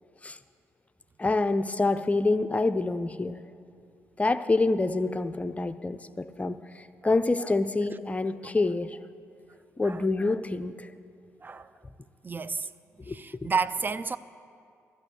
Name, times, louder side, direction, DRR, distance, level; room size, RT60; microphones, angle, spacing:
voice 1, 1.2-3.4 4.2-9.0 9.8-10.9 13.1-13.2, left 3 dB, 20° left, 0.6 m, -27 dB
voice 2, 11.4-11.7 12.2-12.7 13.0-14.2, right 5 dB, 25° right, 0.5 m, -31 dB
13.0 x 6.6 x 9.2 m
hypercardioid pair, 45°, 7 cm